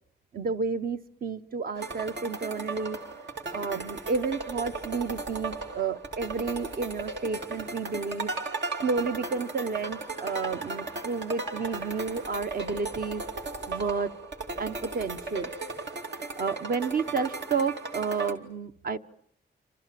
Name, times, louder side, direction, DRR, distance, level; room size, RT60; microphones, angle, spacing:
voice 1, 0.3-3.0 3.5-8.3 8.8-13.2 13.7-14.1 14.6-15.5 16.4-19.0, right 5 dB, 55° right, 10 dB, 1.1 m, -31 dB
sound 1, 1.8-18.3, right 3 dB, 75° right, 2.9 m, -36 dB
29.0 x 26.0 x 7.6 m, 0.66 s
wide cardioid pair, 135°, 18 cm